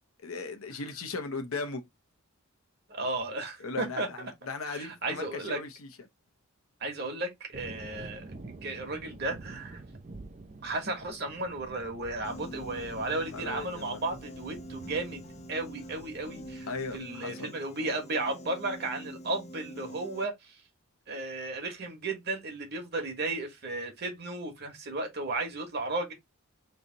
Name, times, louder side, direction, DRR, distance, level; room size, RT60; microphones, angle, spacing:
voice 1, 0.2-1.8 3.6-5.9 13.3-14.0 16.7-17.5, left 4 dB, 80° left, 0.9 m, -37 dB
voice 2, 2.9-4.1 4.6-5.6 6.8-8.3 8.6-9.8 10.6-15.2 15.5-16.7 16.9-20.6 21.1-26.1, right 2 dB, 50° right, 1.2 m, -34 dB
sound 1, 7.5-17.0, right 2 dB, 35° right, 0.4 m, -48 dB
Piano, 12.2-20.3, equal, 30° left, 0.5 m, -45 dB
3.3 x 2.7 x 3.8 m
head